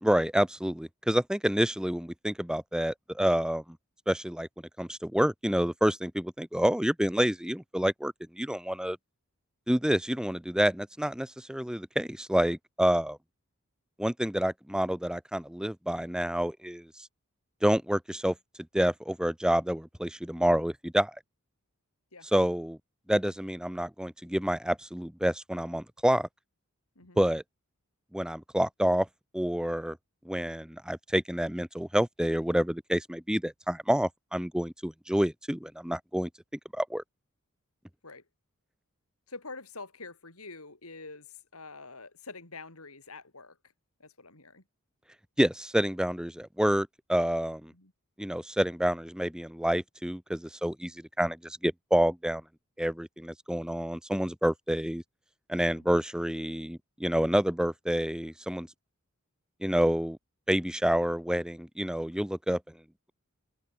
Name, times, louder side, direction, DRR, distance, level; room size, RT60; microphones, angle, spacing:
voice 1, 0.0-3.8 4.1-4.5 4.8-9.0 9.7-13.2 14.0-16.9 17.6-18.3 18.7-21.1 22.3-22.8 23.1-26.3 27.2-27.4 28.1-29.1 29.3-30.0 30.2-36.3 36.7-37.0 45.4-47.7 48.2-52.4 52.8-55.0 55.5-58.7 59.6-60.2 60.5-62.6, equal, 5° right, 0.9 m, -28 dB
voice 2, 39.3-43.6 44.0-44.6 47.7-47.9 55.8-55.9, left 3 dB, 80° left, 5.3 m, -46 dB
open air
head